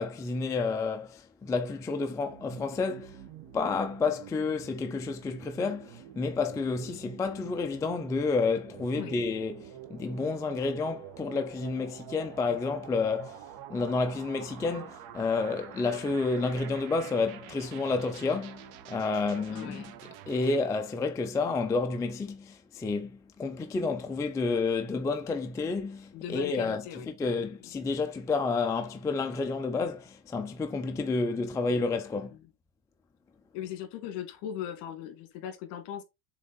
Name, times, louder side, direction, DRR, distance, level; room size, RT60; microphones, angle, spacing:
voice 1, 0.0-3.2 3.5-13.4 13.7-19.9 20.3-32.4, left 4 dB, 5° left, 0.4 m, -30 dB
sound 1, 2.3-20.6, right 11 dB, 55° right, 1.2 m, -47 dB
voice 2, 19.5-19.9 26.1-27.1 27.4-27.7 31.7-31.8 32.1-32.4 33.5-36.0, left 10 dB, 60° left, 2.0 m, -39 dB
7.3 x 3.7 x 3.9 m
supercardioid pair, 140°, 47 cm